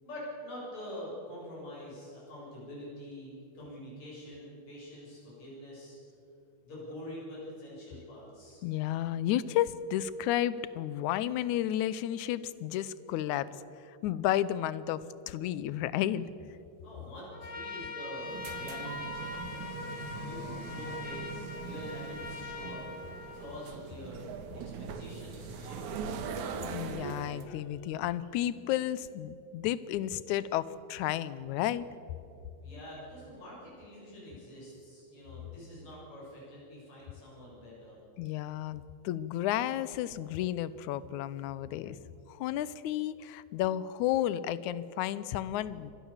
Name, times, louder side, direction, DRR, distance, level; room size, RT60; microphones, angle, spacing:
voice 1, 0.0-6.0 6.6-8.6 16.8-22.8 23.3-24.3 24.5-26.1 32.6-38.0, left 1 dB, 70° left, -6 dB, 9.2 m, -46 dB
voice 2, 8.6-13.5 14.0-16.3 26.6-31.9 38.2-45.9, left 12 dB, 85° left, 17 dB, 2.1 m, -32 dB
Trumpet, 17.3-23.9, left 4 dB, 30° left, 2.5 m, -42 dB
sound 1, 18.2-27.5, right 5 dB, 90° right, 2.8 m, -41 dB
25.0 x 19.0 x 7.2 m, 2.8 s
omnidirectional pair, 3.4 m